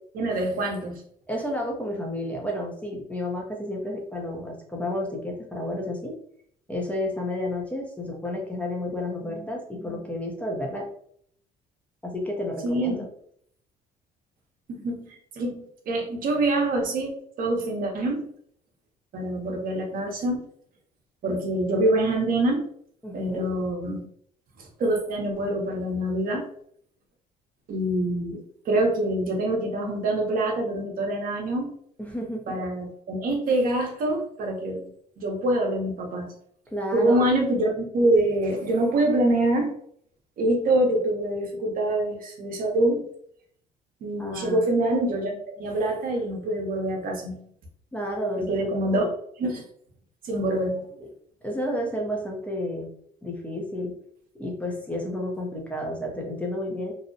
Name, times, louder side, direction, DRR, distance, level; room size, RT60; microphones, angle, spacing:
voice 1, 0.1-1.0 12.6-13.0 14.7-17.1 17.4-18.3 19.1-20.4 21.2-22.6 23.1-24.1 24.6-26.5 27.7-31.7 32.5-34.9 35.2-36.3 36.9-39.7 40.4-43.1 44.0-47.4 48.4-49.1 49.4-49.6 50.2-50.8, right 1 dB, 55° right, 2 dB, 0.7 m, -25 dB
voice 2, 1.3-6.1 6.7-10.9 12.0-13.0 23.0-23.5 32.0-32.5 36.7-37.3 44.2-44.6 47.9-48.6 48.9-49.1 50.4-50.6 51.4-52.9 53.2-53.9 54.4-56.9, left 1 dB, 10° left, -1 dB, 0.5 m, -31 dB
2.6 x 2.0 x 2.6 m, 0.64 s
cardioid pair, 110°, 17 cm